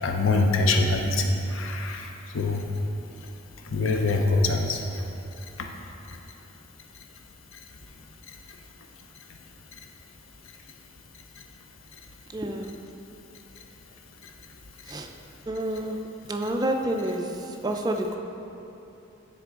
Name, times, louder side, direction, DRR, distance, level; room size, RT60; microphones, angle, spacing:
voice 1, 0.0-2.6 3.6-5.0 5.6-5.7 6.1-6.2 7.5-7.6 8.3-8.4, left 2 dB, 85° left, 3 dB, 0.6 m, -25 dB
voice 2, 12.3-12.7 14.9-15.1 15.5-16.0 16.3-18.2, right 1 dB, 20° right, 3 dB, 0.4 m, -29 dB
9.4 x 3.8 x 3.6 m, 3.0 s
head